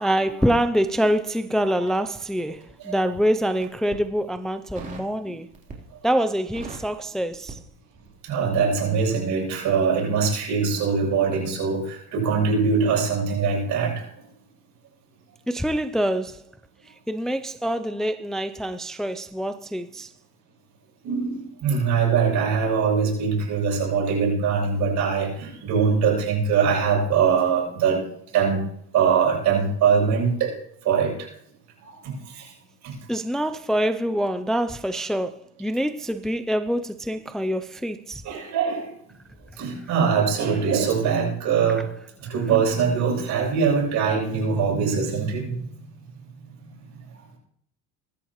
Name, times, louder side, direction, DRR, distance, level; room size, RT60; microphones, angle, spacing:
voice 1, 0.0-5.5 6.0-7.6 15.5-16.4 17.1-20.1 33.1-38.2, equal, ahead, 0.5 m, -25 dB
Crackle, 1.8-2.9 3.5-4.1 4.7-5.1 5.5-6.0 6.3-8.2 8.5-8.7, right 3 dB, 25° right, 3.8 m, -41 dB
voice 2, 8.2-14.0 21.0-28.0 28.3-28.7 28.9-30.6 30.8-31.3 31.8-31.9 32.3-32.5 32.8-32.9 38.2-38.9 39.6-41.9 42.2-45.6, right 6 dB, 55° right, 7.8 m, -22 dB
23.0 x 12.0 x 3.1 m
cardioid pair, 140°, 34 cm